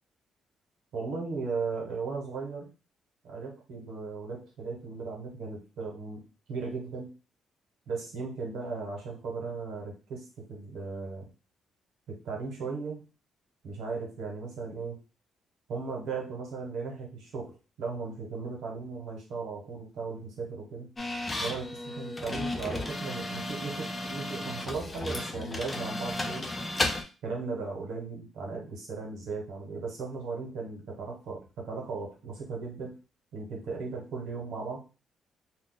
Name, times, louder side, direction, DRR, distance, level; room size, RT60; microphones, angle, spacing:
voice 1, 0.9-2.7 3.2-6.2 6.5-7.1 7.9-11.3 12.1-13.0 13.6-15.0 15.7-17.5 17.8-20.9 21.4-26.5 27.2-32.9 33.3-34.8, right 4 dB, 80° right, 0 dB, 1.3 m, -37 dB
sound 1, 21.0-27.0, left 2 dB, 25° left, 0.7 m, -34 dB
2.6 x 2.4 x 3.8 m, 0.32 s
cardioid pair, 90°, 0 cm